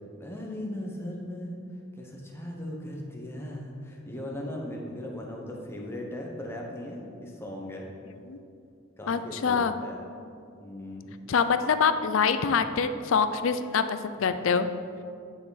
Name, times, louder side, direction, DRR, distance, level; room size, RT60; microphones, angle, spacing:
voice 1, 0.2-1.6 2.0-7.9 9.0-10.0 10.6-11.1 14.3-14.4, left 1 dB, 10° left, -1 dB, 1.0 m, -38 dB
voice 2, 9.1-9.7 11.3-14.7, left 6 dB, 70° left, 11 dB, 0.4 m, -25 dB
9.7 x 6.1 x 4.1 m, 2.4 s
head